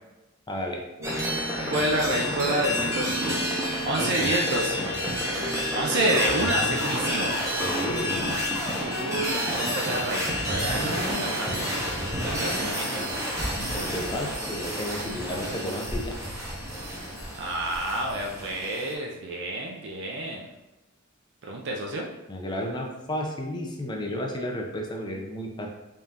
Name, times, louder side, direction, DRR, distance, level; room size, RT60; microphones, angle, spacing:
voice 1, 0.5-0.8 4.0-4.3 7.2-7.3 7.6-8.3 13.7-16.2 22.3-25.7, left 1 dB, 20° left, 1 dB, 0.5 m, -32 dB
sound 1, 1.0-18.9, equal, 15° right, 0.7 m, -29 dB
sound 2, 1.0-7.9, equal, 80° right, 0.8 m, -38 dB
voice 2, 1.7-3.5 3.8-4.9 5.7-7.4 8.8-13.1 17.4-20.5 21.4-22.1, right 1 dB, 55° right, -1 dB, 0.4 m, -29 dB
3.7 x 3.6 x 2.8 m, 1.0 s
head